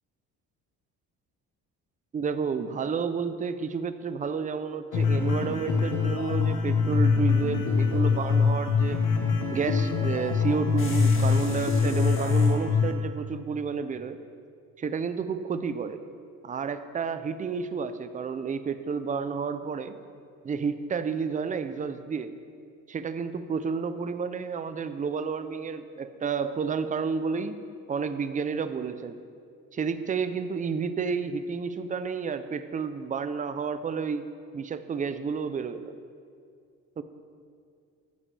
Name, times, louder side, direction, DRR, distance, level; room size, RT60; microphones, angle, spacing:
voice 1, 2.1-9.0 9.5-14.2 14.8-16.0 16.4-20.0 20.4-22.3 22.9-29.2 29.7-34.3 34.5-35.9 37.0-37.1, right 5 dB, 25° right, 11 dB, 0.5 m, -31 dB
sound 1, 4.9-12.9, left 5 dB, 75° left, 1.4 m, -24 dB
sound 2, 10.8-12.6, left 3 dB, 40° left, 1.8 m, -41 dB
14.5 x 9.7 x 3.4 m, 2.3 s
cardioid pair, 125°, 31 cm